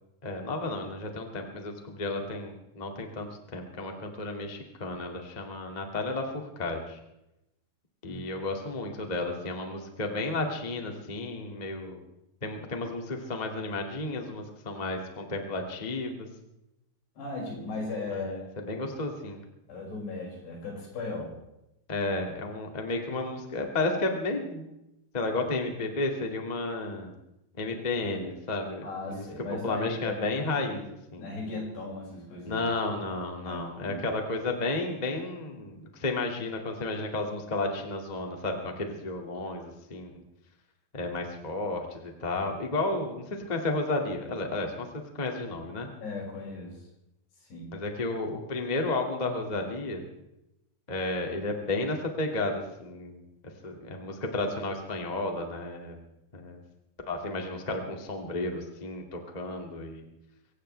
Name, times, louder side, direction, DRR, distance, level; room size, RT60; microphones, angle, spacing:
voice 1, 0.2-7.0 8.0-12.0 12.4-16.3 18.1-19.4 21.9-24.6 25.1-27.1 27.6-29.3 29.6-31.2 32.5-40.1 40.9-45.9 47.7-50.0 50.9-53.2 53.6-56.0 56.3-56.6 57.1-60.0, left 2 dB, 35° left, 2 dB, 0.7 m, -32 dB
voice 2, 17.2-18.5 19.7-21.3 28.8-30.2 31.2-32.6 33.4-34.0 46.0-46.8 47.5-47.7, left 3 dB, 70° left, -2 dB, 7.9 m, -37 dB
23.5 x 17.5 x 3.4 m, 0.88 s
omnidirectional pair, 5.0 m